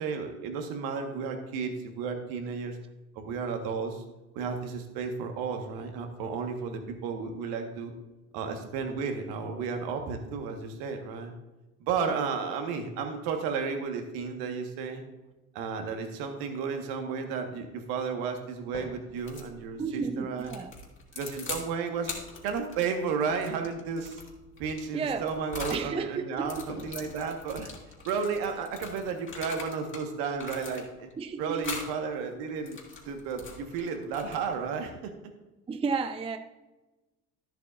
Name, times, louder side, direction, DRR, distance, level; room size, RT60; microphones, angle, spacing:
voice 1, 0.0-2.8 3.1-4.0 4.3-7.9 8.3-11.3 11.8-15.0 15.5-20.6 21.1-22.1 22.4-24.2 24.6-27.7 28.0-31.1 31.4-32.8 33.0-35.1, right 5 dB, 60° right, 1.6 m, -33 dB
sound 1, 17.3-29.7, left 2 dB, 85° left, 1.9 m, -54 dB
sound 2, 19.2-19.5 20.4-21.7 22.0-25.9 26.3-30.0 30.4-31.1 31.6-31.9 32.5-34.6, left 3 dB, 30° left, 2.7 m, -42 dB
voice 2, 19.8-20.7 24.9-25.3 25.7-26.7 31.2-31.6 35.7-36.4, right 5 dB, 15° right, 0.5 m, -32 dB
13.0 x 7.8 x 2.6 m
figure-of-eight pair, 60°, 42 cm